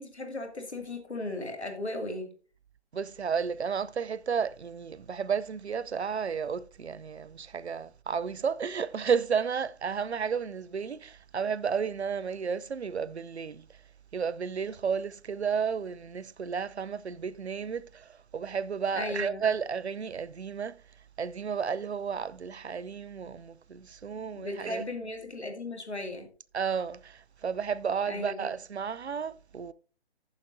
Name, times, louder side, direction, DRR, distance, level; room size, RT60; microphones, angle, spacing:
voice 1, 0.0-2.3 18.9-19.4 24.3-26.3 28.1-28.4, left 2 dB, 80° left, 2.3 m, -36 dB
voice 2, 2.9-13.6 14.1-20.8 21.2-24.8 26.5-29.7, right 6 dB, 80° right, 0.6 m, -32 dB
15.0 x 7.3 x 2.6 m
figure-of-eight pair, 145°, 33 cm